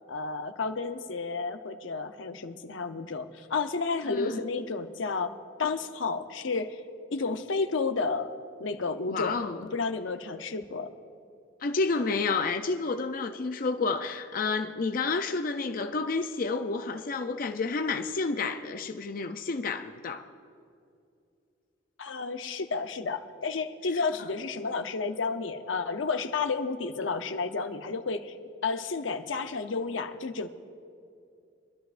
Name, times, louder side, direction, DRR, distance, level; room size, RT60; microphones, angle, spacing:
voice 1, 0.1-6.8 7.1-8.3 8.6-9.4 9.7-10.9 22.0-28.3 28.6-30.5, left 4 dB, 85° left, 0.7 m, -31 dB
voice 2, 4.1-4.5 9.1-9.7 11.6-20.3, left 4 dB, 45° left, 0.5 m, -30 dB
24.0 x 12.5 x 2.5 m
head